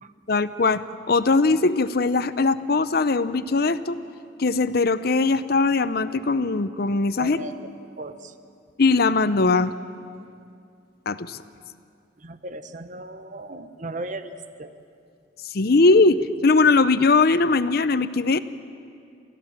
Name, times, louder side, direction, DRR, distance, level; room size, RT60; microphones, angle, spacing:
voice 1, 0.3-4.0 4.4-7.4 8.8-9.7 11.1-11.4 15.4-18.4, left 3 dB, 60° left, 14 dB, 0.7 m, -20 dB
voice 2, 7.2-7.7 8.0-8.3 12.2-14.3 14.6-14.7, right 2 dB, 45° right, 10 dB, 1.0 m, -36 dB
29.0 x 14.5 x 7.4 m, 2.4 s
head